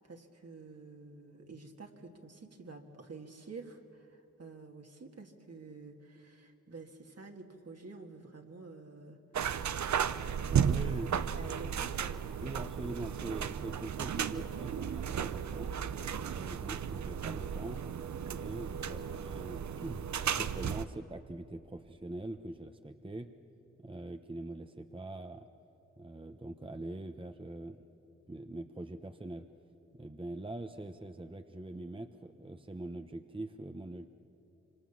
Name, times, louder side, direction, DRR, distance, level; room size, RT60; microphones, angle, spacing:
voice 1, 0.0-9.2 9.7-11.1 11.3-12.2, right 4 dB, 55° right, 3 dB, 2.3 m, -49 dB
sound 1, 9.3-20.9, right 8 dB, 75° right, 0.7 m, -34 dB
voice 2, 10.5-11.1 12.4-15.7 16.2-17.8 18.3-23.3 23.8-25.5 26.0-27.8 28.3-29.5 29.9-34.1, right 2 dB, 20° right, 7 dB, 1.0 m, -43 dB
25.5 x 25.5 x 7.4 m, 2.8 s
cardioid pair, 45°, 29 cm